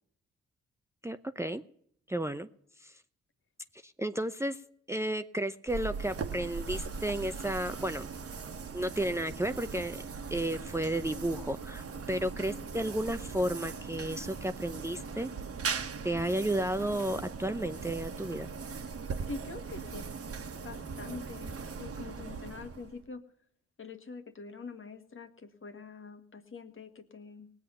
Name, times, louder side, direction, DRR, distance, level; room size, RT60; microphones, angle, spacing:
voice 1, 1.0-1.6 2.1-2.5 2.8-3.0 3.8-4.6 4.9-8.1 8.7-10.0 10.3-15.3 16.0-18.5, right 1 dB, 10° right, 9 dB, 0.7 m, -33 dB
sound 1, 5.7-23.1, right 5 dB, 50° right, 1.4 m, -39 dB
voice 2, 19.2-20.1 20.5-23.2 23.8-27.5, left 4 dB, 45° left, 8 dB, 1.7 m, -45 dB
18.5 x 8.4 x 5.6 m, 0.70 s
supercardioid pair, 50°, 30 cm